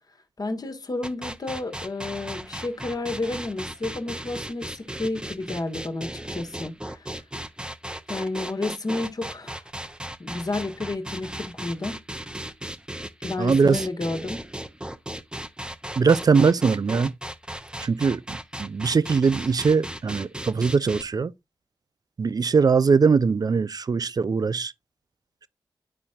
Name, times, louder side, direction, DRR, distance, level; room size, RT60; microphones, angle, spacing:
voice 1, 0.4-7.1 8.1-9.6 10.2-12.0 13.2-14.5, left 2 dB, 45° left, 1.4 m, -31 dB
sound 1, 1.0-21.0, right 1 dB, 10° right, 0.8 m, -36 dB
voice 2, 13.4-13.8 16.0-17.1 17.8-21.3 22.2-24.7, right 5 dB, 45° right, 0.5 m, -21 dB
11.0 x 4.2 x 2.4 m
supercardioid pair, 40°, 9 cm